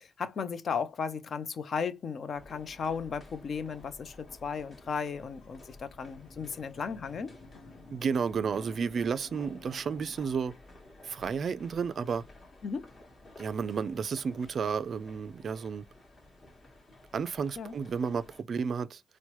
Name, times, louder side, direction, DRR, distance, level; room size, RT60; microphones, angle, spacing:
voice 1, 0.0-7.3 12.6-12.9 17.6-17.7, left 6 dB, 50° left, 0.5 m, -35 dB
sound 1, 2.3-18.4, left 2 dB, 35° left, 1.2 m, -54 dB
sound 2, 5.4-10.2, left 3 dB, 80° left, 0.8 m, -53 dB
voice 2, 7.9-10.5 11.0-12.2 13.4-15.8 17.1-19.0, right 6 dB, 50° right, 0.3 m, -32 dB
4.4 x 2.1 x 2.9 m
cardioid pair, 90°, 0 cm